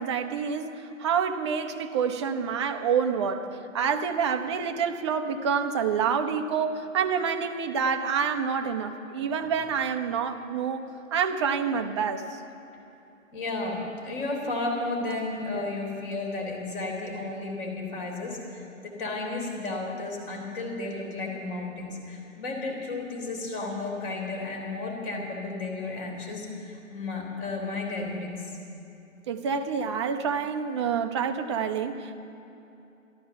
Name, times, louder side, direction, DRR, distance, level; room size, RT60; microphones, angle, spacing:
voice 1, 0.0-12.4 29.3-32.2, right 6 dB, 20° right, 6 dB, 0.6 m, -28 dB
voice 2, 13.3-28.5, left 2 dB, 40° left, 0 dB, 3.6 m, -33 dB
13.0 x 13.0 x 6.8 m, 2.9 s
figure-of-eight pair, 125°, 40 cm